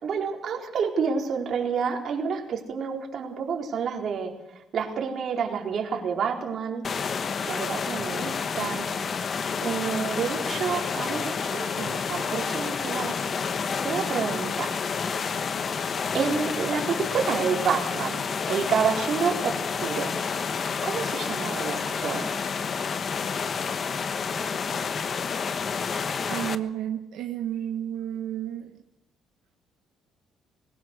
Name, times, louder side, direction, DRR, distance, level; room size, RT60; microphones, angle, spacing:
voice 1, 0.0-4.3 4.7-6.9 7.4-8.9 9.6-13.1 13.8-14.7 16.1-20.1 20.8-22.3, right 6 dB, 55° right, 1 dB, 4.4 m, -29 dB
sound 1, 6.8-26.6, left 6 dB, 40° left, 1.1 m, -29 dB
voice 2, 26.3-28.7, right 10 dB, 80° right, 4 dB, 1.3 m, -31 dB
21.0 x 19.0 x 6.7 m, 0.87 s
cardioid pair, 115°, 0 cm